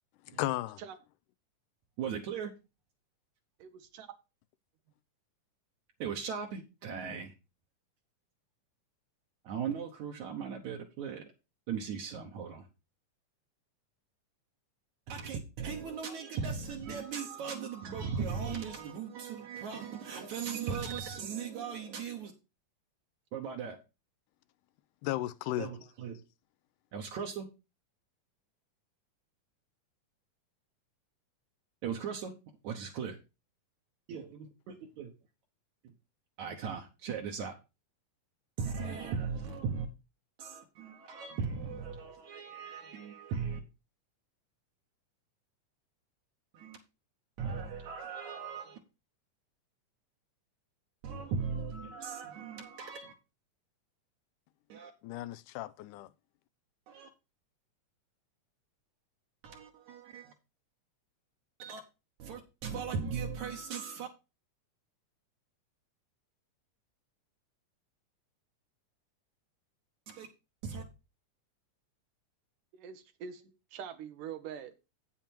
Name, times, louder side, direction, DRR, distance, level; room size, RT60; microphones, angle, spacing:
voice 1, 0.3-0.8 25.0-25.7 55.0-56.1, left 15 dB, 80° left, 2.1 m, -35 dB
voice 2, 2.0-2.5 6.0-7.3 9.4-11.3 11.7-12.7 15.1-22.3 23.3-23.8 25.6-26.2 26.9-27.5 31.8-32.3 32.6-33.2 34.1-35.1 36.4-37.5 38.6-39.9 40.4-43.6 46.5-46.8 47.4-48.8 51.0-53.1 54.7-54.9 56.9-57.1 59.4-60.3 61.6-61.8 62.2-64.1 70.1-70.3 70.6-70.8, right 6 dB, 70° right, 2.3 m, -38 dB
voice 3, 3.6-4.2 72.7-73.4 73.7-74.7, right 8 dB, 90° right, 2.7 m, -44 dB
8.8 x 7.2 x 4.4 m
omnidirectional pair, 3.7 m